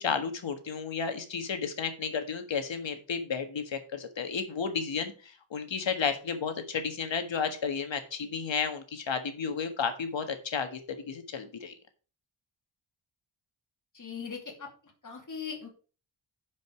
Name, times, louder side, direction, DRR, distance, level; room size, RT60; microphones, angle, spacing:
voice 1, 0.0-11.7, left 6 dB, 65° left, 7 dB, 1.7 m, -32 dB
voice 2, 13.9-14.7 15.0-15.7, left 6 dB, 40° left, 1 dB, 2.7 m, -39 dB
10.5 x 5.3 x 5.0 m, 0.37 s
wide cardioid pair, 180°, 49 cm